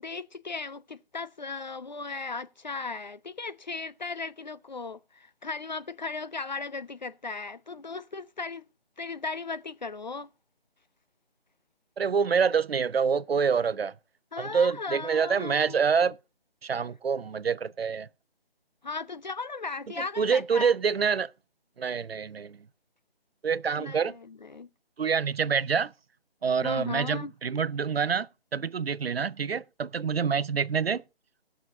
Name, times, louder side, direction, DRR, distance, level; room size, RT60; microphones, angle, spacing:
voice 1, 0.0-8.6 9.0-10.3 14.3-15.8 18.8-20.7 23.8-24.7 26.6-27.3, left 4 dB, 45° left, 0.4 m, -37 dB
voice 2, 12.0-13.9 14.4-16.2 16.6-18.1 20.2-21.3 21.8-22.6 23.4-24.1 25.0-25.9 26.4-31.0, right 6 dB, 75° right, 0.5 m, -26 dB
17.0 x 6.3 x 3.8 m
figure-of-eight pair, 155°, 31 cm